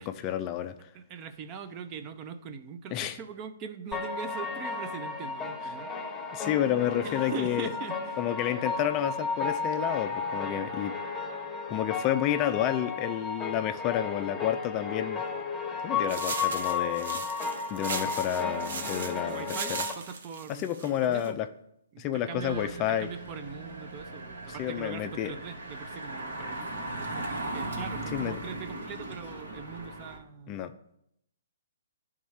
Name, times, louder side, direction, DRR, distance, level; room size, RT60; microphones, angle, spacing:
voice 1, 0.0-0.9 2.9-3.2 6.3-7.7 8.2-10.9 11.7-15.2 15.8-17.2 17.7-19.8 20.5-21.5 22.0-23.1 24.5-25.3 28.1-28.4 30.5-30.7, left 11 dB, 30° left, 9 dB, 0.4 m, -30 dB
voice 2, 0.9-6.1 7.0-8.2 19.3-21.4 21.9-30.6, right 6 dB, 30° right, 10 dB, 0.6 m, -42 dB
sound 1, 3.9-19.9, left 5 dB, 5° left, 1.2 m, -34 dB
sound 2, 16.1-21.3, right 5 dB, 65° right, 0.8 m, -38 dB
Engine, 22.4-30.2, right 2 dB, 80° right, 1.6 m, -38 dB
10.5 x 3.6 x 3.2 m, 0.75 s
hypercardioid pair, 135°, 0 cm